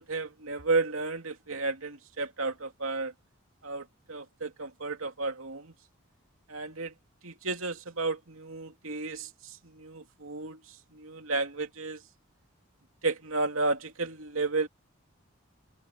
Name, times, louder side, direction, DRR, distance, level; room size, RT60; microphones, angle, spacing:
voice 1, 0.0-3.1 3.6-5.7 6.5-6.9 7.2-10.6 10.9-12.0 13.0-14.7, right 3 dB, 75° right, 2.8 m, -32 dB
head